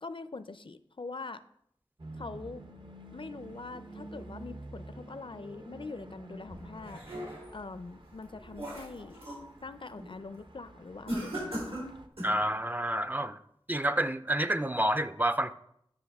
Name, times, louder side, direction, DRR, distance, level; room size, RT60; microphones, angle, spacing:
voice 1, 0.0-1.4 2.2-2.6 3.1-7.0 7.5-9.3 9.6-11.8, left 3 dB, 60° left, 12 dB, 0.4 m, -43 dB
sound 1, 2.0-12.1, right 1 dB, 55° right, 0.8 m, -49 dB
sound 2, 6.5-7.6 8.1-9.5 9.9-10.2 11.1-12.4, equal, 80° right, 3.8 m, -39 dB
voice 2, 12.2-13.4 13.7-15.5, right 1 dB, 20° right, 11 dB, 0.4 m, -29 dB
9.8 x 6.2 x 3.5 m, 0.74 s
wide cardioid pair, 50°, 10 cm